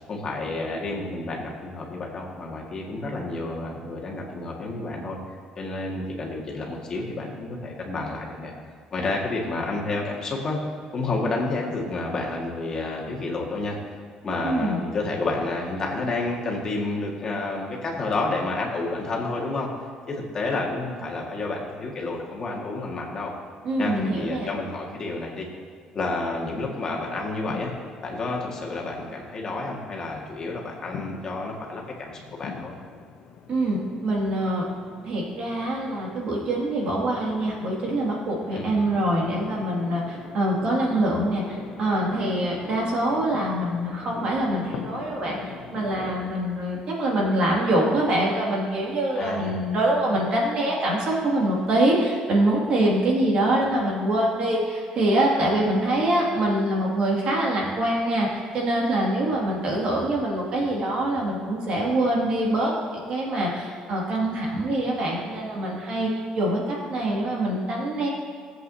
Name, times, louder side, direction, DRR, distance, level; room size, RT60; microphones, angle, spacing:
voice 1, 0.1-5.2 5.6-8.5 8.9-10.6 10.9-13.8 14.2-19.7 20.1-23.3 23.8-25.5 25.9-27.7 28.0-32.8 38.5-38.7 49.2-49.6, left 2 dB, 30° left, -2 dB, 1.8 m, -30 dB
voice 2, 14.4-14.8 23.6-24.5 33.5-34.6 35.0-62.7 63.0-66.1 66.3-66.6 66.9-68.1, right 1 dB, 50° right, -3 dB, 2.3 m, -24 dB
sound 1, 27.0-46.3, left 6 dB, 55° left, 0.9 m, -42 dB
17.5 x 8.0 x 2.8 m, 2.1 s
cardioid pair, 160°, 2 cm